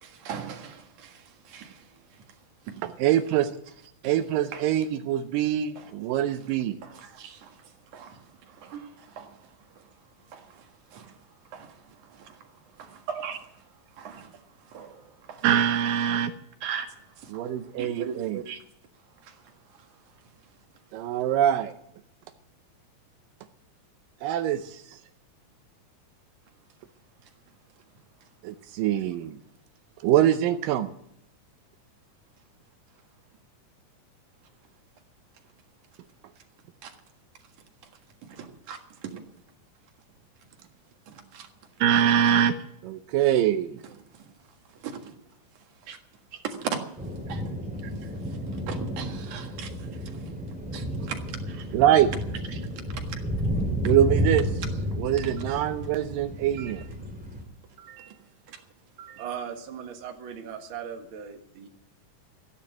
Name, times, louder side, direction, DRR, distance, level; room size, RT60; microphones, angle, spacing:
voice 1, 0.0-1.8 4.5-4.6 5.8-5.9 6.8-7.5 7.9-8.2 8.5-9.3 10.3-10.5 10.9-11.1 11.5-11.7 12.1-12.4 12.8-13.4 14.0-14.3 14.7-15.5 16.6-16.9 17.2-17.4 17.8-18.6 19.3-19.4 36.8-36.9 38.3-39.2 41.1-41.5 44.8-45.1 45.9-46.0 46.3-46.8 47.3-47.4 48.0-48.1 48.7-49.7 50.1-50.2 50.7-51.7 52.5-52.6 52.9-53.2 55.1-55.3 56.5-56.7 57.8-58.1 58.5-58.6 59.0-59.2, right 7 dB, 65° right, 3.0 m, -39 dB
voice 2, 2.8-3.5 4.0-6.8 15.4-16.3 17.3-18.4 20.9-21.7 24.2-25.0 28.4-29.4 30.0-30.9 41.8-42.5 42.8-43.8 51.0-51.1 51.7-52.1 53.8-54.5 55.0-56.8, right 11 dB, 85° right, 2.4 m, -24 dB
sound 1, 47.0-57.4, equal, 5° right, 2.6 m, -31 dB
voice 3, 59.2-61.7, right 8 dB, 45° right, 1.9 m, -38 dB
15.0 x 10.5 x 8.0 m
omnidirectional pair, 3.9 m